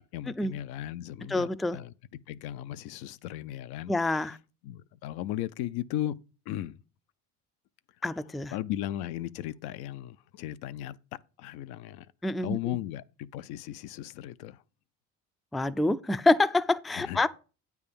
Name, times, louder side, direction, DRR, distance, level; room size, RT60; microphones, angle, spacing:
voice 1, 0.0-1.9 2.3-3.9 4.6-6.2 6.5-6.8 8.5-11.0 11.4-12.1 12.4-14.6 17.0-17.3, left 13 dB, 75° left, 0.5 m, -36 dB
voice 2, 1.3-1.8 3.9-4.4 8.0-8.5 12.2-12.8 15.5-17.3, left 2 dB, ahead, 0.3 m, -27 dB
8.8 x 3.6 x 6.8 m
supercardioid pair, 75°, 38 cm